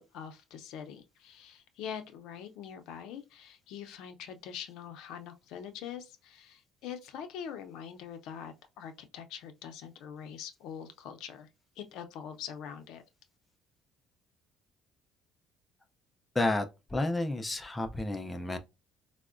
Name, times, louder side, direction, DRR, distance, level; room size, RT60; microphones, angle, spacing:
voice 1, 0.0-11.5 11.8-13.0, left 8 dB, 75° left, 0.5 m, -44 dB
voice 2, 16.3-18.6, left 2 dB, 10° left, 0.4 m, -31 dB
4.4 x 2.1 x 2.4 m
cardioid pair, 155°, 0 cm